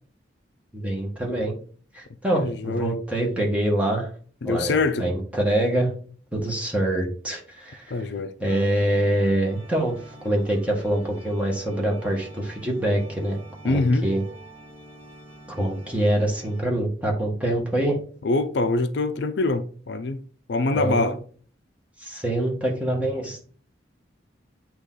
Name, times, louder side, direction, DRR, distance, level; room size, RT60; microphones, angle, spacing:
voice 1, 0.7-1.6 1.9-4.1 4.4-4.7 5.0-5.9 6.3-8.1 8.4-9.9 10.2-13.4 13.6-14.2 15.5-18.0 20.7-21.1 22.0-23.4, right 1 dB, 5° right, 1.5 m, -25 dB
voice 2, 2.3-2.9 4.4-5.1 7.9-8.3 13.6-14.0 18.2-20.2 20.5-21.2, left 3 dB, 65° left, 0.5 m, -24 dB
sound 1, 8.4-16.6, right 1 dB, 30° left, 3.2 m, -46 dB
8.1 x 3.0 x 3.8 m
head